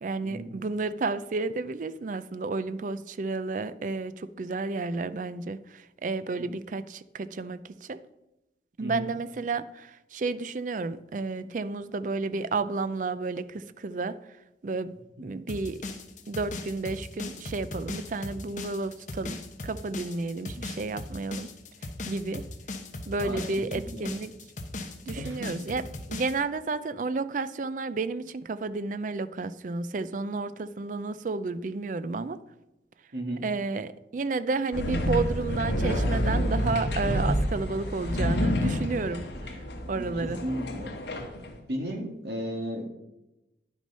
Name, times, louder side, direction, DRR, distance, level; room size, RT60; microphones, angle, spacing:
voice 1, 0.0-8.0 8.8-14.2 14.6-14.9 15.2-15.8 16.3-19.4 19.6-21.5 22.1-22.5 23.1-24.3 25.1-32.4 33.4-39.6 39.9-40.4, right 3 dB, 45° right, 0.4 m, -31 dB
sound 1, 15.5-26.4, left 2 dB, 40° left, 1.0 m, -38 dB
voice 2, 23.7-24.1 25.1-25.6 33.1-33.4 39.9-40.9 41.5-42.9, right 1 dB, 60° right, 1.8 m, -35 dB
sound 2, 34.7-41.5, equal, 70° left, 1.4 m, -28 dB
10.0 x 6.2 x 5.4 m
head